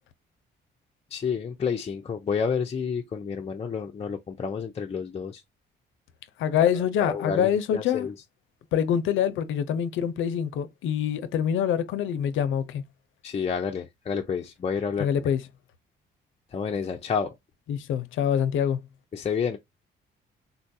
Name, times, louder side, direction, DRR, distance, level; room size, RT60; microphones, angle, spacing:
voice 1, 1.1-5.4 7.1-8.1 13.2-15.1 16.5-17.4 19.1-19.6, left 6 dB, 30° left, 0.5 m, -29 dB
voice 2, 6.4-8.1 8.7-12.8 15.0-15.4 17.7-18.9, left 9 dB, 80° left, 0.6 m, -25 dB
3.8 x 2.3 x 2.6 m
cardioid pair, 90°, 20 cm